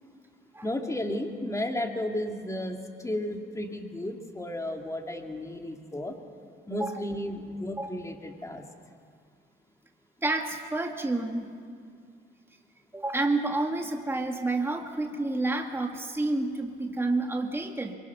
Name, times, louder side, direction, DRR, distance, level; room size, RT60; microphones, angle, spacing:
voice 1, 0.6-6.1 6.7-8.6, left 1 dB, 15° left, 3 dB, 2.4 m, -33 dB
voice 2, 10.2-11.6 12.9-17.9, right 2 dB, 10° right, 2 dB, 1.9 m, -29 dB
23.5 x 23.0 x 6.0 m, 2.1 s
cardioid pair, 90°, 20 cm